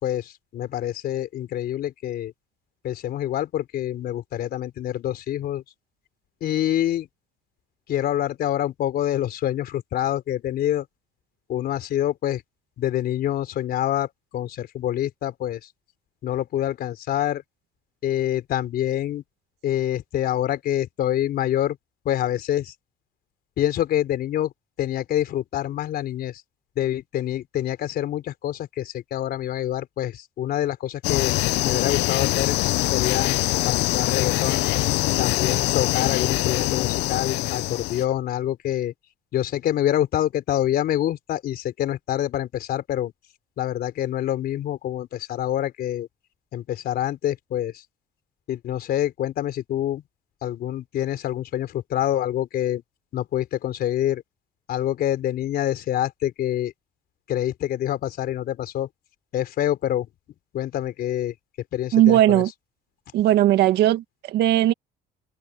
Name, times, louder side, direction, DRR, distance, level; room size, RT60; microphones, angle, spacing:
voice 1, 0.0-2.3 2.8-5.6 6.4-7.1 7.9-10.9 11.5-12.4 12.8-15.7 16.2-17.4 18.0-19.2 19.6-21.8 22.0-22.7 23.6-24.5 24.8-26.4 26.8-31.3 31.6-32.6 32.9-34.7 35.2-38.9 39.3-43.1 43.6-46.1 46.5-47.8 48.5-50.0 50.4-52.8 53.1-54.2 54.7-56.7 57.3-58.9 59.3-60.1 60.5-61.3 61.7-62.4, left 12 dB, 65° left, 4.1 m, -26 dB
sound 1, 31.0-38.0, left 20 dB, 85° left, 0.5 m, -23 dB
voice 2, 61.9-62.5 63.1-64.7, right 13 dB, 80° right, 1.8 m, -18 dB
cardioid pair, 110°, 17 cm